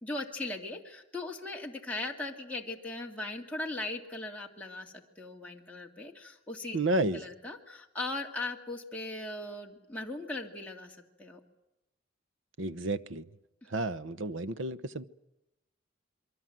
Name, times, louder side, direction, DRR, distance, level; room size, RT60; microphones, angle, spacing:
voice 1, 0.0-6.8 7.1-11.4, left 2 dB, 10° left, -2 dB, 2.4 m, -39 dB
voice 2, 6.7-7.2 12.6-13.2 13.7-15.0, right 2 dB, 85° right, 15 dB, 1.0 m, -31 dB
27.5 x 23.0 x 7.7 m, 0.92 s
head